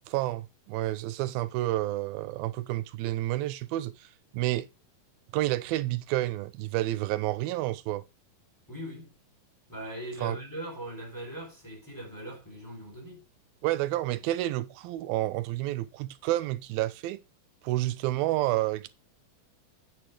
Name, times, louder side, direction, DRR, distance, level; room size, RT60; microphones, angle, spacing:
voice 1, 0.1-4.1 4.3-4.7 5.3-8.0 10.2-10.4 13.6-17.2 17.6-18.9, right 16 dB, 85° right, 2.4 m, -29 dB
voice 2, 8.7-9.1 9.7-13.3, right 1 dB, 5° left, 3.6 m, -40 dB
9.3 x 6.1 x 4.6 m
omnidirectional pair, 4.2 m